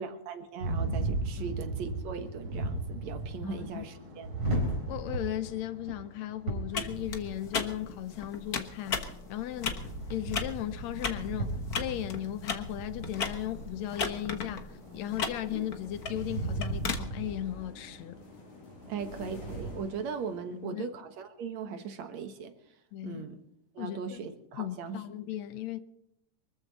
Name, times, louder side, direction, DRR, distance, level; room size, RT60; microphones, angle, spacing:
voice 1, 0.0-4.3 18.9-22.5 23.0-23.4 23.8-25.0, right 5 dB, 70° right, 2.6 m, -39 dB
sound 1, 0.6-19.7, right 2 dB, 45° right, 5.2 m, -37 dB
voice 2, 3.4-3.8 4.9-9.8 10.1-14.7 14.9-18.2 20.6-20.9 22.9-23.2 23.8-24.2 24.5-25.8, left 12 dB, 75° left, 1.9 m, -36 dB
sound 2, 6.7-17.0, left 5 dB, 45° left, 1.3 m, -37 dB
sound 3, 14.6-21.1, left 5 dB, 90° left, 4.0 m, -52 dB
23.5 x 14.0 x 4.1 m
omnidirectional pair, 3.4 m